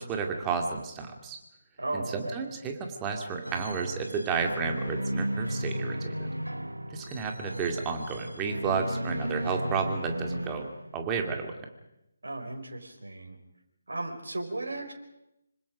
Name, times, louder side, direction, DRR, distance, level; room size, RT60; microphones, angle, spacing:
voice 1, 0.0-1.4 1.9-6.3 6.9-10.7 10.9-11.6, right 5 dB, 15° right, 3 dB, 2.6 m, -32 dB
voice 2, 1.8-2.4 12.2-13.4 13.9-14.9, right 2 dB, 60° right, 2 dB, 5.0 m, -35 dB
sound 1, 3.4-11.1, equal, 80° right, 1.2 m, -35 dB
26.0 x 25.5 x 5.2 m, 0.87 s
figure-of-eight pair, 145°, 0 cm